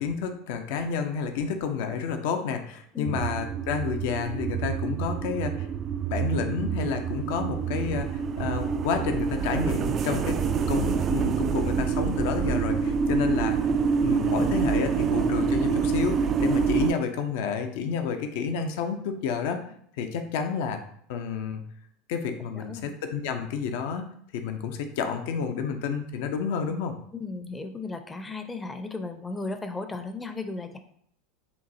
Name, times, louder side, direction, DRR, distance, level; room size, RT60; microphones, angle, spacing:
voice 1, 0.0-5.7 6.1-13.6 14.0-19.6 20.0-20.8 21.1-21.6 22.1-24.1 24.3-27.0, left 6 dB, 60° left, 7 dB, 0.5 m, -30 dB
sound 1, 3.1-16.9, right 6 dB, 35° right, 0.3 m, -26 dB
voice 2, 22.5-22.9 27.1-30.8, left 3 dB, 15° left, 7 dB, 0.6 m, -35 dB
6.8 x 2.6 x 2.6 m, 0.66 s
figure-of-eight pair, 80°, 0 cm